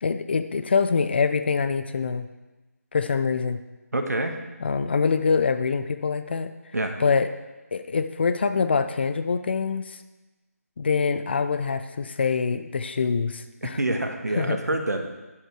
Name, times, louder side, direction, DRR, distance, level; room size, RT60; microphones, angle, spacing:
voice 1, 0.0-2.3 2.9-3.6 4.6-6.5 7.0-7.3 7.7-10.0 10.8-13.8 14.4-14.6, left 5 dB, 40° left, 10 dB, 0.6 m, -24 dB
voice 2, 3.9-4.4 6.7-7.0 13.6-15.0, right 1 dB, 85° right, 5 dB, 1.5 m, -26 dB
9.8 x 7.9 x 4.7 m, 1.1 s
figure-of-eight pair, 160°, 9 cm